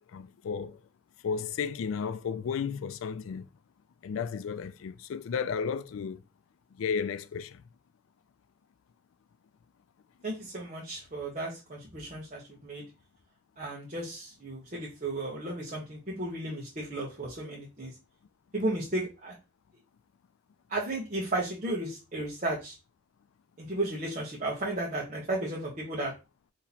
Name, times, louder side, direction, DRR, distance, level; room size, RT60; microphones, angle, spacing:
voice 1, 0.1-0.8 1.2-3.5 4.0-6.2 6.7-7.6, left 6 dB, 80° left, 0.4 m, -33 dB
voice 2, 10.2-12.8 13.6-17.9 18.5-19.3 20.7-22.7 23.6-26.1, right 2 dB, 35° right, 1.0 m, -34 dB
4.2 x 2.9 x 4.1 m
head